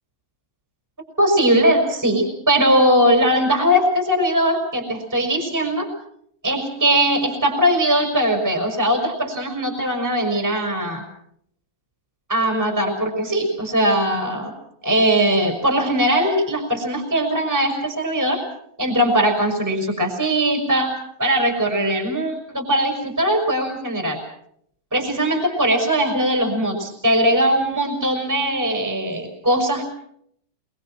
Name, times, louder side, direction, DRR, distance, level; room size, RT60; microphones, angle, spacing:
voice 1, 1.2-5.9 6.4-11.0 12.3-14.5 14.8-18.4 18.8-24.2 24.9-29.8, equal, 5° right, 3 dB, 5.0 m, -20 dB
27.5 x 23.0 x 6.1 m, 0.69 s
omnidirectional pair, 3.9 m